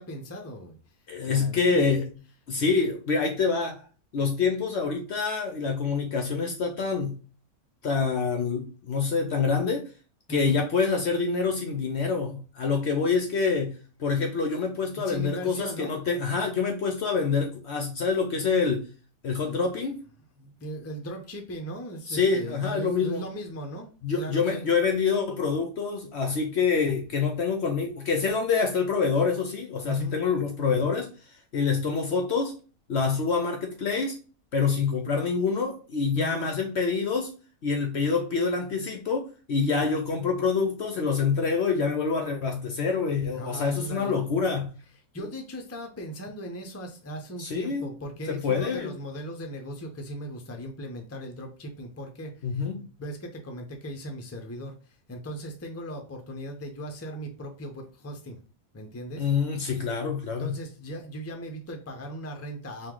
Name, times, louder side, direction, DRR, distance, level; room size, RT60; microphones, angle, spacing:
voice 1, 0.0-1.0 1.2-1.9 10.3-10.6 14.9-16.0 19.4-19.6 20.4-24.7 29.8-30.2 36.1-36.5 43.3-44.2 45.1-52.6 53.0-58.4 58.7-59.3 60.4-62.9, right 1 dB, 20° left, 0.4 m, -38 dB
voice 2, 1.1-2.1 2.5-3.8 4.1-7.2 7.8-9.9 10.3-18.9 19.2-20.0 22.1-23.2 24.0-31.1 31.5-32.6 32.9-34.2 34.5-37.3 37.6-44.8 47.4-47.9 48.3-48.9 52.4-52.8 59.2-60.6, left 5 dB, 60° left, 0.8 m, -26 dB
4.6 x 2.5 x 3.7 m
omnidirectional pair, 1.5 m